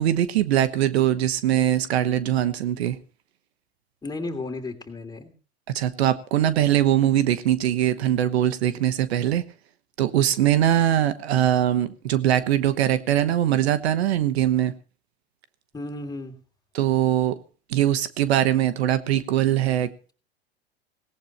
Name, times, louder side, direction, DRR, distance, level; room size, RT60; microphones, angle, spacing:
voice 1, 0.0-3.0 5.7-9.4 10.0-14.7 16.7-17.4 17.7-19.9, right 11 dB, 80° right, 1.2 m, -22 dB
voice 2, 4.0-5.3 15.7-16.4, left 2 dB, 15° left, 3.0 m, -33 dB
18.5 x 17.5 x 3.1 m
hypercardioid pair, 100°, 32 cm